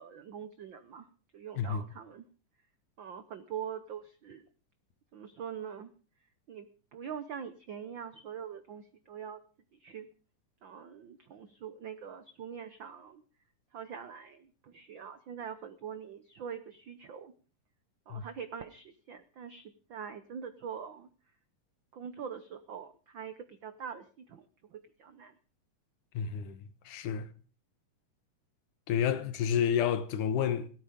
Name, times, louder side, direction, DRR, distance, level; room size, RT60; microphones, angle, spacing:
voice 1, 0.0-2.3 3.0-4.5 5.1-5.9 6.5-9.4 9.7-10.1 10.6-13.2 13.7-17.3 18.1-21.1 21.9-25.3, right 8 dB, 80° right, 1.0 m, -44 dB
voice 2, 26.1-27.3 28.9-30.7, left 8 dB, 80° left, 2.7 m, -30 dB
17.5 x 13.0 x 5.1 m
omnidirectional pair, 3.5 m